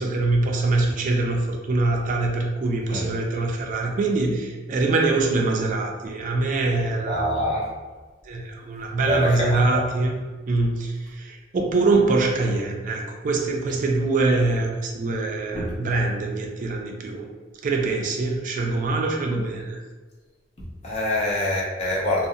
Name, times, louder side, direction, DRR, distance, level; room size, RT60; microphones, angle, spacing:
voice 1, 0.0-7.4 8.2-10.2 10.5-17.3 17.6-19.8, right 3 dB, 45° right, 1 dB, 0.3 m, -24 dB
voice 2, 7.1-7.7 9.0-9.8 15.5-15.6 20.8-22.3, left 1 dB, 35° left, -5 dB, 0.6 m, -25 dB
2.5 x 2.0 x 2.6 m, 1.4 s
head